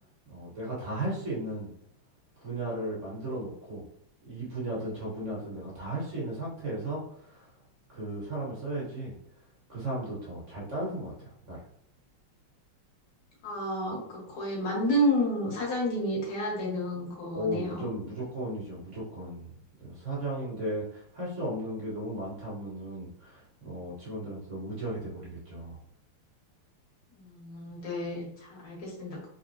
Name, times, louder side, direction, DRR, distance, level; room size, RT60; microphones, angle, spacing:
voice 1, 0.3-1.7 2.4-3.8 4.2-7.5 7.9-9.1 9.7-11.6 17.3-19.5 19.8-25.8, right 1 dB, 40° right, -6 dB, 1.5 m, -35 dB
voice 2, 13.4-17.9 27.1-29.3, equal, 90° left, -3 dB, 2.4 m, -30 dB
4.1 x 3.8 x 2.7 m, 0.71 s
omnidirectional pair, 2.4 m